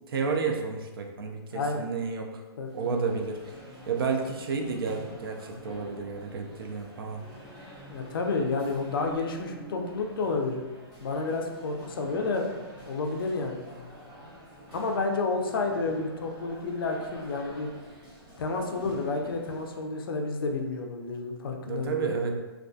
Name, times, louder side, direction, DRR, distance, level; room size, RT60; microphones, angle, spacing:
voice 1, 0.0-2.4 2.7-3.6 3.9-7.2 21.6-22.3, right 5 dB, 60° right, 3 dB, 0.4 m, -31 dB
voice 2, 1.5-1.9 2.6-2.9 7.8-10.6 11.0-12.5 12.8-13.7 14.7-17.7 18.4-22.2, left 3 dB, 60° left, 3 dB, 0.4 m, -30 dB
sound 1, 2.6-19.9, equal, 15° right, 0.5 m, -47 dB
2.3 x 2.2 x 2.5 m, 1.2 s
hypercardioid pair, 170°, 13 cm